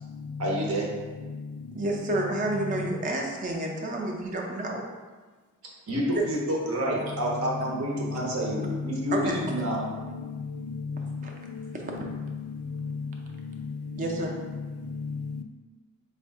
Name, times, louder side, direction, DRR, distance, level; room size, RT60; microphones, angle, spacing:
voice 1, 0.4-0.9 5.9-9.8, equal, 75° right, 0.8 m, -28 dB
voice 2, 1.7-4.9 6.0-6.2 9.1-9.4 11.2-11.3 14.0-14.3, right 2 dB, 35° right, 0.5 m, -29 dB
voice 3, 11.9-12.4 13.5-13.6 13.9-14.0, left 5 dB, 90° left, 0.3 m, -36 dB
3.5 x 2.4 x 3.5 m
head